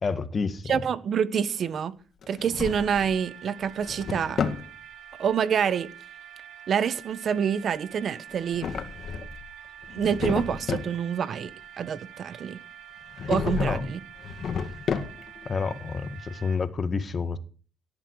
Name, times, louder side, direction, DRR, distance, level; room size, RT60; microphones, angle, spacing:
voice 1, 0.0-0.8 13.6-13.9 15.5-17.4, left 4 dB, 40° left, 1.8 m, -29 dB
voice 2, 0.7-1.9 2.3-4.4 5.2-5.9 6.7-8.7 9.9-11.5 11.8-12.6 13.3-14.0, right 7 dB, 60° right, 1.2 m, -27 dB
Drawer open or close, 2.2-3.2 3.6-4.7 8.3-9.5 9.8-11.0 13.1-13.8 14.2-15.4, left 6 dB, 55° left, 1.9 m, -31 dB
sound 1, 2.7-16.6, right 9 dB, 90° right, 5.0 m, -46 dB
17.5 x 11.0 x 4.9 m
cardioid pair, 90°, 0 cm